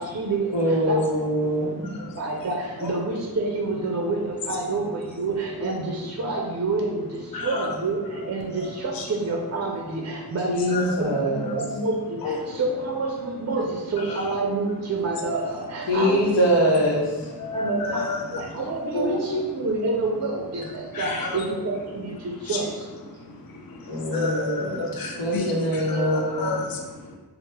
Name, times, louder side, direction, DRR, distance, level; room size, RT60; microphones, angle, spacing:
voice 1, 0.0-1.1 1.4-16.4 17.5-23.1, right 3 dB, 40° right, 1 dB, 0.4 m, -28 dB
voice 2, 0.5-1.8 10.4-11.6 15.9-17.3 23.9-24.9 25.2-26.6, equal, 85° left, -4 dB, 0.8 m, -23 dB
voice 3, 7.3-7.8 8.9-9.1 10.7-11.1 11.4-11.5 12.2-12.5 14.0-14.2 17.4-18.6 18.9-19.4 20.9-21.6 22.4-22.6 23.2-27.2, left 3 dB, 60° left, 0 dB, 0.5 m, -30 dB
3.2 x 2.0 x 2.9 m, 1.3 s
cardioid pair, 40°, 41 cm